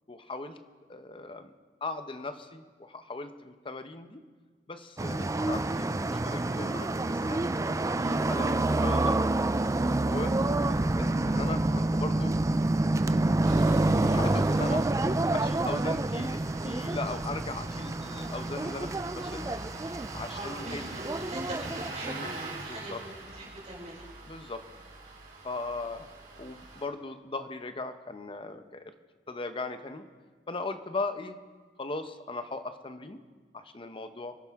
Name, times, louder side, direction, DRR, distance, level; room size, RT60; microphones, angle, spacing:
voice 1, 0.1-0.6 0.9-1.5 1.8-4.2 4.7-7.4 8.0-8.5 8.8-9.3 10.1-10.3 11.0-12.4 14.0-14.9 15.3-19.6 20.1-20.8 22.0-22.3 22.7-23.0 24.3-24.6 25.4-26.1 26.4-28.9 29.3-30.1 30.5-31.4 31.8-33.2 33.5-34.3, left 3 dB, 30° left, 9 dB, 0.8 m, -38 dB
sound 1, 5.0-21.9, right 2 dB, 20° right, 0.4 m, -28 dB
Engine starting, 13.4-26.8, right 3 dB, 55° right, 6.0 m, -44 dB
voice 2, 20.3-23.0 23.3-24.1, right 1 dB, 40° right, -5 dB, 5.9 m, -41 dB
27.0 x 11.5 x 3.6 m, 1.4 s
head